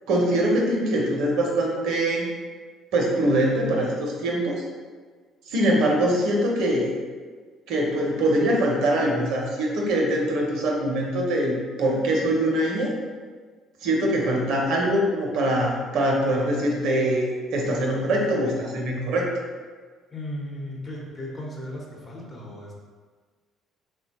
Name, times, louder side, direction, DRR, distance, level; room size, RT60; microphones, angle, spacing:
voice 1, 0.1-2.3 2.9-4.6 5.5-6.9 7.7-12.9 13.8-19.3, right 1 dB, 75° right, -1 dB, 0.6 m, -23 dB
voice 2, 20.1-22.7, left 1 dB, 35° left, -2 dB, 0.8 m, -36 dB
3.0 x 2.1 x 2.8 m, 1.5 s
hypercardioid pair, 60°, 0 cm